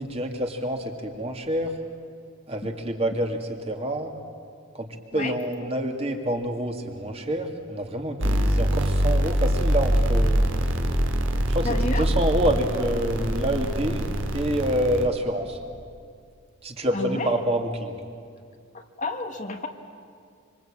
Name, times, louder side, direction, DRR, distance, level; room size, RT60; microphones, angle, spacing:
voice 1, 0.0-1.8 2.5-3.4 3.7-4.1 4.7-10.4 11.5-14.1 14.3-15.6 16.6-18.0, right 1 dB, 30° right, 3 dB, 2.3 m, -27 dB
sound 1, 8.2-15.1, equal, 60° right, 2.5 m, -24 dB
voice 2, 11.6-12.1 16.9-17.3 18.7-19.7, left 2 dB, 35° left, 5 dB, 1.5 m, -30 dB
26.0 x 25.5 x 8.8 m, 2.3 s
head